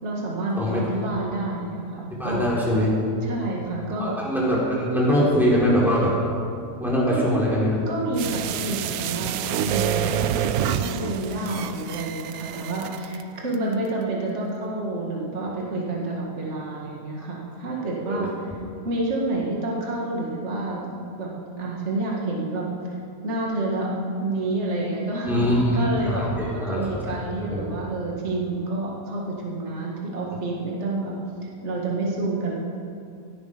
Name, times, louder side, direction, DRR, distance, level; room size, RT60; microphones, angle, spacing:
voice 1, 0.0-2.5 3.2-4.2 7.1-7.3 7.9-18.3 18.8-20.8 21.2-21.3 21.6-22.9 23.2-23.9 24.2-25.4 25.7-31.2 31.6-32.5, right 2 dB, 45° right, -2 dB, 2.1 m, -29 dB
voice 2, 2.2-2.9 4.0-6.1 6.8-7.8 18.1-18.3 25.3-27.1 27.4-27.6, equal, ahead, -6 dB, 3.5 m, -22 dB
sound 1, 8.2-13.2 13.5-13.6, right 10 dB, 75° right, 1.0 m, -28 dB
16.5 x 10.5 x 5.0 m, 2.4 s
omnidirectional pair, 1.7 m